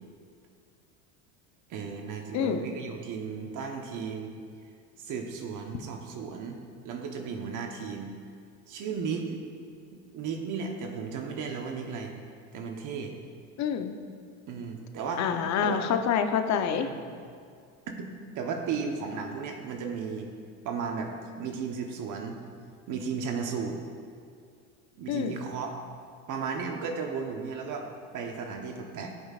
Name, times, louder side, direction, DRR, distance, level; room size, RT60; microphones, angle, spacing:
voice 1, 1.7-4.3 5.0-6.6 6.8-8.1 8.7-9.4 9.9-12.1 12.5-13.1 14.5-15.3 15.6-15.8 16.7-17.0 18.0-18.1 18.3-20.3 20.6-21.1 21.4-22.4 22.9-23.8 25.0-25.8 26.3-29.1, right 5 dB, 50° right, 3 dB, 1.0 m, -35 dB
voice 2, 13.6-13.9 15.2-16.9 25.1-25.4, left 7 dB, 45° left, 7 dB, 0.7 m, -27 dB
14.5 x 5.5 x 2.4 m, 2.3 s
supercardioid pair, 100°, 40 cm